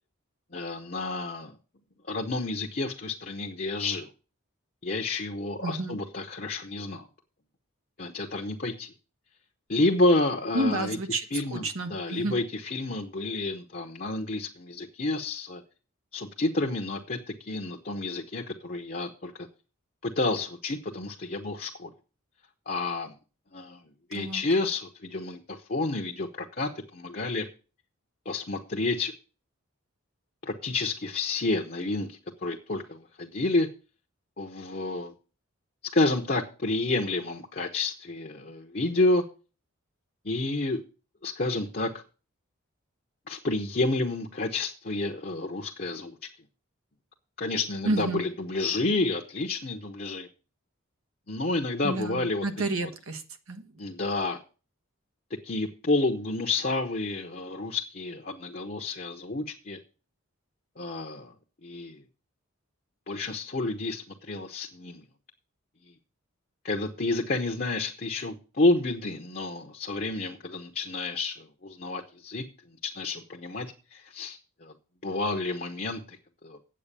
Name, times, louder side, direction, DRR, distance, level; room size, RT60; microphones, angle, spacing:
voice 1, 0.5-1.6 2.1-4.1 4.8-7.0 8.0-8.9 9.7-11.0 11.3-11.6 11.9-15.6 16.1-19.5 20.0-21.9 22.7-23.1 23.5-23.8 24.1-27.5 28.2-29.1 30.4-33.7 34.4-35.1 35.9-39.2 40.2-40.8 41.2-41.9 43.3-46.2 47.4-50.3 51.3-52.5 52.8-52.9 53.8-54.4 55.4-59.8 60.8-61.3 61.6-62.0 63.1-65.0 66.6-72.4 72.8-74.7 75.0-76.6, left 2 dB, 45° left, 3 dB, 0.9 m, -30 dB
voice 2, 5.6-5.9 10.5-12.3 24.1-24.4 47.8-48.2 51.8-53.2 53.5-53.6, right 2 dB, 80° right, 7 dB, 1.3 m, -30 dB
8.6 x 8.0 x 6.7 m, 0.36 s
head